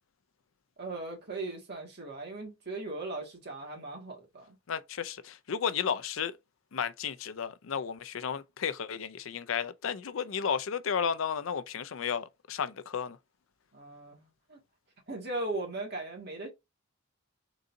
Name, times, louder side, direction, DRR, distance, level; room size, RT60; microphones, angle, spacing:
voice 1, 0.8-4.6 13.7-14.6 15.1-16.5, right 2 dB, 50° right, 1.8 m, -38 dB
voice 2, 4.7-6.4 6.7-13.2, left 7 dB, 65° left, 0.5 m, -33 dB
4.0 x 3.8 x 2.6 m
head